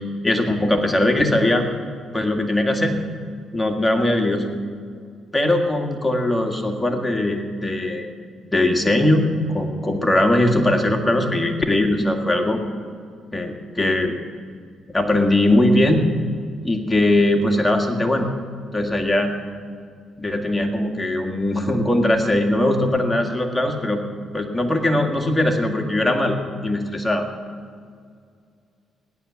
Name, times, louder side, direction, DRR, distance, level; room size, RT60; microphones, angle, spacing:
voice 1, 0.2-1.7 2.1-3.0 3.5-4.4 5.3-8.1 8.5-12.6 13.3-14.1 14.9-16.1 16.6-18.3 18.7-19.3 20.2-24.0 24.3-26.4 26.6-27.2, left 1 dB, 15° left, 3 dB, 2.0 m, -20 dB
17.0 x 11.0 x 7.2 m, 2.1 s
cardioid pair, 90°, 0 cm